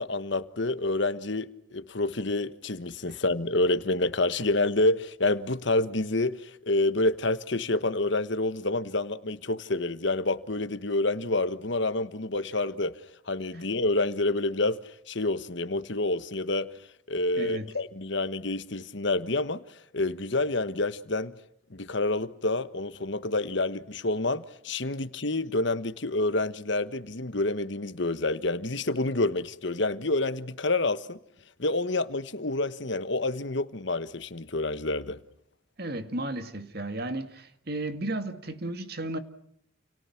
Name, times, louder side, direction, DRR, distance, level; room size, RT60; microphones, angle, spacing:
voice 1, 0.0-16.7 17.1-19.6 19.9-21.3 21.7-31.2 31.6-35.2, left 2 dB, 60° left, 1.3 m, -28 dB
voice 2, 17.4-17.7 35.8-39.2, right 1 dB, 50° right, 2.1 m, -34 dB
30.0 x 29.5 x 6.0 m
head